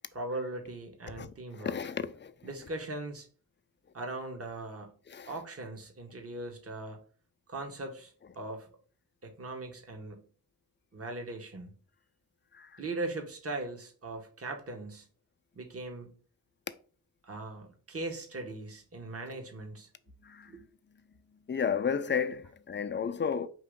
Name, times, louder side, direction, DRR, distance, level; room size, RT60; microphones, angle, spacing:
voice 1, 0.1-1.8 2.4-3.3 3.9-4.9 5.3-7.0 7.5-8.7 9.2-10.2 10.9-11.7 12.8-15.1 15.5-16.1 17.2-19.9 20.5-20.6, right 2 dB, 35° right, 1.0 m, -39 dB
voice 2, 1.2-2.5 5.1-5.3 12.5-12.8 19.3-19.4 20.2-20.6 21.5-23.5, left 7 dB, 30° left, 0.4 m, -33 dB
4.6 x 3.0 x 3.6 m
wide cardioid pair, 75°, 39 cm